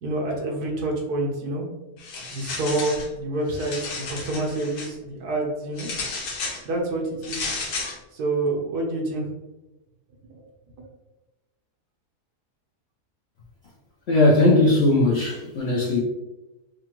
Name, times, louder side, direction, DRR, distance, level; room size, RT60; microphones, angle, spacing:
voice 1, 0.0-1.6 2.3-5.9 6.6-7.6 8.1-9.3 10.3-10.5 10.8-10.9, right 2 dB, 75° right, -1 dB, 1.5 m, -27 dB
sound 1, 2.0-3.1 3.5-4.9 5.8-6.6 7.2-8.0, left 3 dB, 85° left, 1.4 m, -32 dB
voice 2, 14.1-16.0, left 2 dB, 55° left, -4 dB, 0.7 m, -18 dB
4.8 x 2.3 x 3.0 m, 1.0 s
omnidirectional pair, 1.7 m